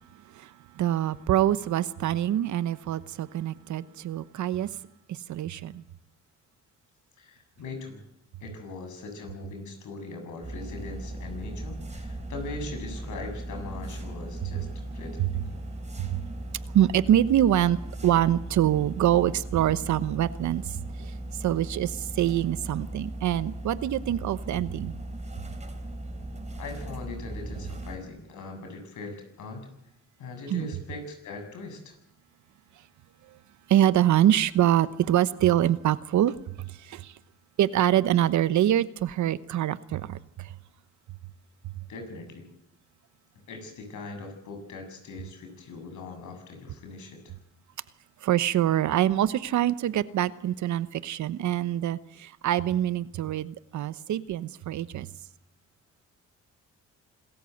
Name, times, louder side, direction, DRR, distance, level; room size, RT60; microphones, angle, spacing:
voice 1, 0.3-4.7 5.1-5.8 15.2-15.3 16.0-16.2 16.7-21.1 21.4-24.9 30.5-30.7 33.7-37.1 37.6-40.5 48.2-55.1, right 12 dB, 70° right, 1.0 m, -25 dB
voice 2, 7.2-8.0 8.4-14.7 14.9-15.6 26.6-29.7 30.2-32.0 41.9-42.4 43.5-47.4, left 3 dB, 75° left, 7.3 m, -40 dB
sound 1, 10.4-28.0, right 1 dB, 25° right, 3.6 m, -38 dB
26.5 x 14.0 x 8.0 m
cardioid pair, 90°, 30 cm